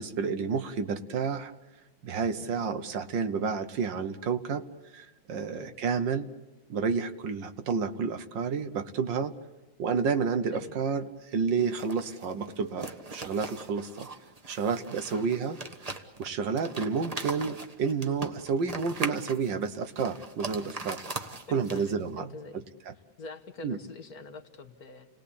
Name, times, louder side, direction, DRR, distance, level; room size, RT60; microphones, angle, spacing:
voice 1, 0.0-1.5 2.0-4.7 4.9-6.3 6.7-9.3 9.8-14.1 14.5-15.6 16.2-21.0 21.5-22.9 23.6-23.8, right 5 dB, 70° right, 10 dB, 1.8 m, -30 dB
sound 1, 11.6-22.1, right 3 dB, 25° right, 1.2 m, -40 dB
voice 2, 21.5-22.6 23.2-25.1, left 3 dB, 55° left, 7 dB, 1.7 m, -45 dB
29.5 x 19.0 x 8.6 m, 1.1 s
omnidirectional pair, 2.1 m